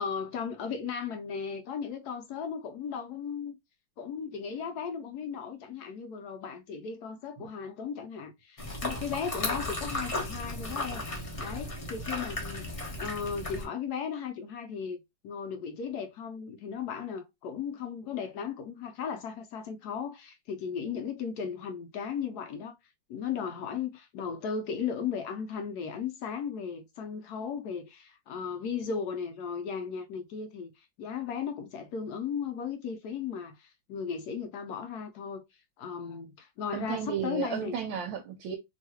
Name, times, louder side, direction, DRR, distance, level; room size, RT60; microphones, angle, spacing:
voice 1, 0.0-3.6 4.0-11.0 11.4-22.8 23.1-35.4 35.8-37.7, left 6 dB, 75° left, 0.9 m, -36 dB
sound 1, 8.6-13.6, left 1 dB, 55° left, 0.3 m, -35 dB
voice 2, 36.7-38.6, right 8 dB, 85° right, 1.4 m, -33 dB
3.0 x 2.7 x 2.8 m
omnidirectional pair, 2.1 m